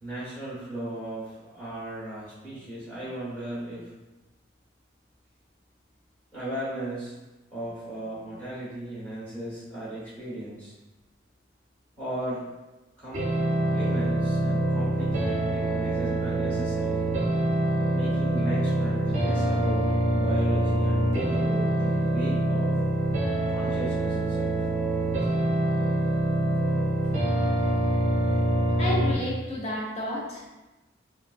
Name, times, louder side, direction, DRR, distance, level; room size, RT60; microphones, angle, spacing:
voice 1, 0.0-3.9 6.3-7.1 7.5-10.7 12.0-12.4 13.0-13.3 13.7-17.1 17.9-19.8 20.1-22.7 23.5-24.7, right 1 dB, 10° left, -11 dB, 0.9 m, -36 dB
sound 1, 13.1-29.1, right 1 dB, 40° right, 0.6 m, -25 dB
voice 2, 28.8-30.5, left 1 dB, 35° left, -5 dB, 0.7 m, -31 dB
3.5 x 2.3 x 2.3 m, 1.1 s
head